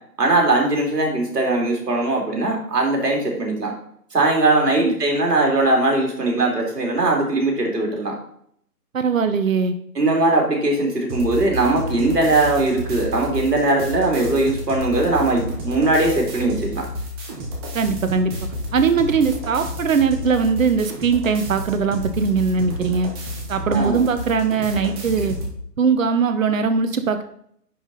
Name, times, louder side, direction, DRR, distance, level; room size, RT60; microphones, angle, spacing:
voice 1, 0.2-3.7 4.1-8.1 9.9-16.8 23.7-24.0, right 2 dB, 75° right, 0 dB, 3.2 m, -20 dB
voice 2, 8.9-9.7 17.7-18.3 18.7-23.1 23.5-25.4 25.8-27.2, right 5 dB, 55° right, 8 dB, 1.2 m, -20 dB
sound 1, 11.1-25.5, left 1 dB, 15° right, 1.1 m, -31 dB
9.9 x 5.2 x 4.1 m, 0.66 s
figure-of-eight pair, 145°, 48 cm